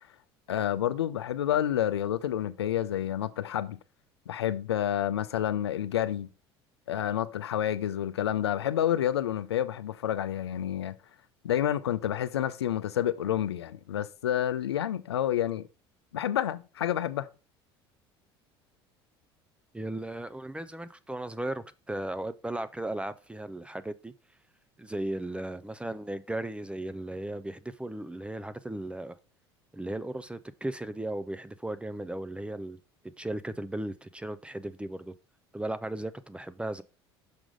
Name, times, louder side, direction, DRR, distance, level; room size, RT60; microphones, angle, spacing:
voice 1, 0.5-3.8 4.3-6.3 6.9-11.0 11.4-15.7 16.1-17.3, left 11 dB, 85° left, 0.5 m, -29 dB
voice 2, 19.7-24.1 24.8-29.2 29.7-32.8 33.2-35.1 35.5-36.8, right 1 dB, 10° right, 0.5 m, -36 dB
6.1 x 5.1 x 5.0 m
hypercardioid pair, 65°, 13 cm